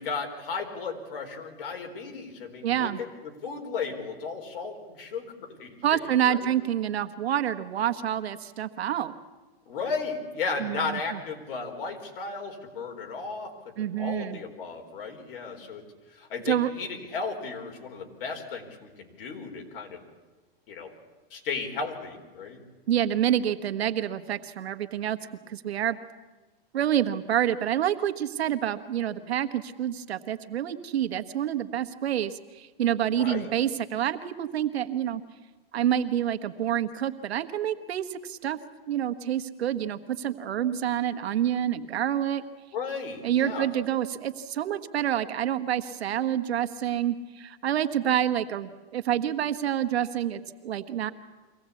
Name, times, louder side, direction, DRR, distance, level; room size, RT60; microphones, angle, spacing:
voice 1, 0.0-6.5 9.7-20.0 20.7-20.9 21.3-22.6 33.1-33.5 42.7-43.7, left 4 dB, 60° left, 3 dB, 4.3 m, -35 dB
voice 2, 2.6-3.0 5.8-9.1 10.6-11.2 13.8-14.4 16.5-16.7 22.9-25.2 25.5-26.0 26.7-35.2 35.7-38.6 38.9-42.4 43.2-51.1, right 10 dB, 85° right, 10 dB, 1.5 m, -28 dB
24.0 x 18.0 x 8.4 m, 1.2 s
supercardioid pair, 155°, 31 cm